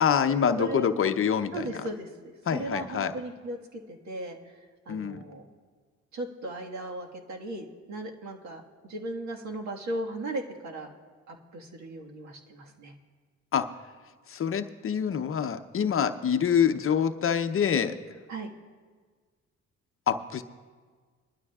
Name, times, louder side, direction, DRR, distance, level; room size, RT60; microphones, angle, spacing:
voice 1, 0.0-1.7 2.5-3.1 4.9-5.2 13.5-13.7 14.3-18.0 20.1-20.4, left 7 dB, 45° left, 9 dB, 0.7 m, -26 dB
voice 2, 0.6-0.9 1.5-4.4 4.8-5.4 6.1-10.9 11.3-12.9 18.3-18.5, right 1 dB, 65° right, 1 dB, 1.7 m, -37 dB
21.0 x 12.5 x 2.4 m, 1.5 s
cardioid pair, 90°, 30 cm